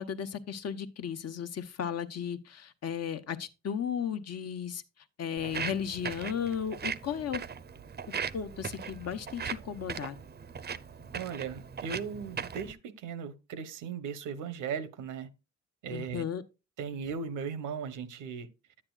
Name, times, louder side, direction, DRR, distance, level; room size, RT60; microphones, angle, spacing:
voice 1, 0.0-4.8 5.2-7.4 8.3-10.2 15.9-16.4, left 8 dB, 55° left, 1.0 m, -35 dB
Walk footsteps, 5.4-12.7, right 6 dB, 35° right, 0.6 m, -39 dB
voice 2, 11.1-15.3 15.8-16.2 16.8-18.5, right 6 dB, 85° right, 1.1 m, -37 dB
10.0 x 8.7 x 2.4 m
cardioid pair, 90°, 30 cm